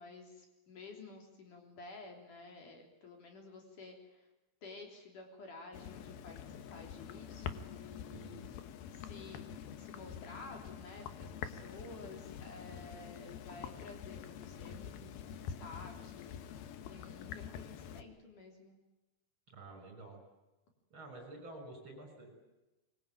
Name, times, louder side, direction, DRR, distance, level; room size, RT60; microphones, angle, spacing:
voice 1, 0.0-4.3 4.6-6.4 6.7-8.4 8.9-9.4 9.8-18.8, left 3 dB, 55° left, 2 dB, 4.9 m, -52 dB
sound 1, 5.7-18.0, left 8 dB, 75° left, 3.1 m, -46 dB
voice 2, 8.1-8.4 19.5-20.2 20.9-22.3, right 2 dB, 30° right, 4 dB, 7.0 m, -50 dB
25.0 x 22.5 x 9.3 m, 1.1 s
omnidirectional pair, 4.4 m